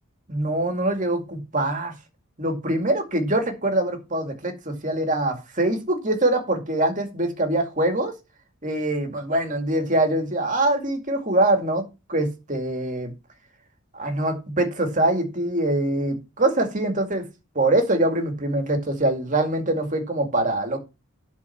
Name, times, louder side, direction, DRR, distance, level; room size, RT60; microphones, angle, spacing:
voice 1, 0.3-1.9 2.4-8.1 8.6-13.1 13.9-17.2 17.6-20.8, right 1 dB, 35° right, 5 dB, 2.2 m, -24 dB
12.0 x 4.6 x 5.8 m, 0.27 s
head